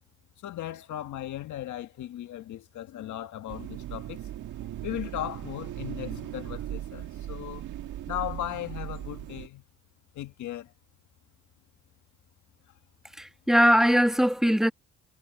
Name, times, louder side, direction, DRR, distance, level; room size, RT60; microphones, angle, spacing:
voice 1, 0.4-4.3 4.8-7.7 8.1-9.6 10.2-10.7, left 13 dB, 75° left, 1.7 m, -37 dB
sound 1, 3.5-9.5, right 12 dB, 80° right, 1.7 m, -38 dB
voice 2, 13.2-14.7, equal, ahead, 1.4 m, -21 dB
cardioid pair, 90°, 30 cm